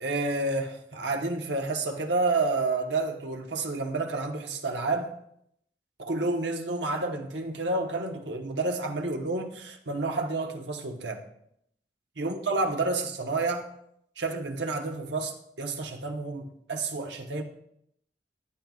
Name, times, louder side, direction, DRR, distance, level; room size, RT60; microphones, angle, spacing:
voice 1, 0.0-5.1 6.0-11.2 12.2-13.7 14.2-17.4, right 3 dB, 75° right, 4 dB, 1.1 m, -30 dB
15.0 x 10.5 x 2.4 m, 0.74 s
head